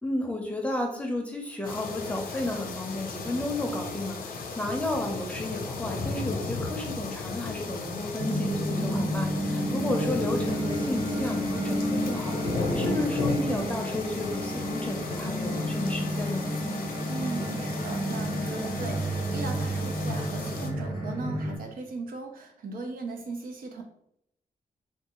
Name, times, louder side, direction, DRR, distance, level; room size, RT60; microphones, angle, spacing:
voice 1, 0.0-16.5, left 2 dB, 10° left, 1 dB, 0.6 m, -33 dB
sound 1, 1.6-20.7, left 3 dB, 90° left, 0.6 m, -35 dB
sound 2, 8.2-21.6, equal, 30° right, 1.3 m, -31 dB
voice 2, 17.1-23.8, right 3 dB, 90° right, 3 dB, 0.6 m, -38 dB
3.3 x 2.4 x 3.7 m, 0.76 s
wide cardioid pair, 135°, 14 cm